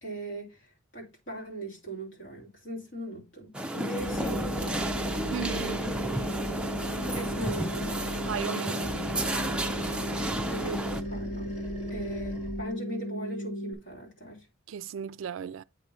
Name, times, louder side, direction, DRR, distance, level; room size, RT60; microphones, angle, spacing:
voice 1, 0.0-3.5 3.9-4.8 7.1-8.0 10.5-14.5, right 2 dB, 60° left, 3.4 m, -39 dB
sound 1, 3.5-11.0, right 1 dB, 5° right, 0.4 m, -32 dB
sound 2, 3.7-13.7, equal, 85° left, 1.4 m, -36 dB
Animal, 4.0-8.5 8.8-12.7, equal, 30° left, 2.1 m, -41 dB
voice 2, 5.3-5.9 8.2-9.0 14.7-15.6, right 8 dB, 70° right, 0.3 m, -36 dB
8.1 x 3.1 x 5.3 m
head